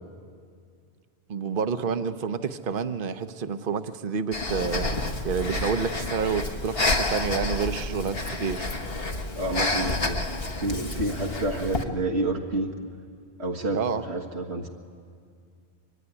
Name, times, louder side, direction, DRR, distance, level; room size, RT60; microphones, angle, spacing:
voice 1, 1.3-4.9 5.2-8.7 13.7-14.1, right 6 dB, 55° right, 10 dB, 1.1 m, -29 dB
Breathing, 4.3-11.8, left 2 dB, 65° left, 1.6 m, -29 dB
voice 2, 9.4-10.2 10.6-12.7 13.4-14.7, right 2 dB, 85° right, 0 dB, 1.8 m, -29 dB
25.0 x 24.0 x 9.9 m, 2.2 s
omnidirectional pair, 1.1 m